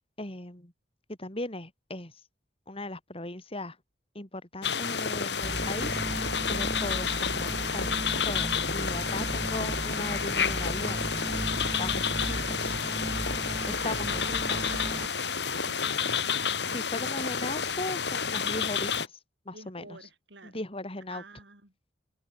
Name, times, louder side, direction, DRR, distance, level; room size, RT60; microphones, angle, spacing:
voice 1, 0.2-0.7 1.2-2.1 2.7-3.8 4.1-11.1 11.8-12.7 13.7-14.2 14.5-14.6 16.7-19.1 19.5-20.0 20.4-21.2, left 2 dB, 30° left, 4.1 m, -38 dB
sound 1, 4.6-19.1, left 6 dB, 70° left, 4.0 m, -30 dB
sound 2, 5.4-15.1, right 1 dB, 20° right, 0.8 m, -36 dB
voice 2, 12.2-12.7 13.7-14.9 15.6-16.6 19.5-20.6 21.1-21.7, right 3 dB, 75° right, 7.9 m, -49 dB
head